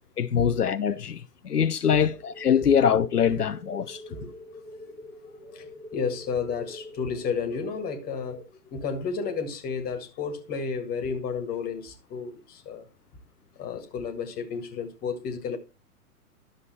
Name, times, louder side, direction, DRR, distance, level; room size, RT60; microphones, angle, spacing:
voice 1, 0.2-4.0, left 8 dB, 80° left, 0.8 m, -23 dB
sound 1, 2.0-8.4, left 1 dB, 35° right, 5.1 m, -45 dB
voice 2, 5.4-12.9 13.6-15.6, left 5 dB, 20° left, 1.7 m, -32 dB
11.5 x 6.7 x 4.2 m
figure-of-eight pair, 120°, 46 cm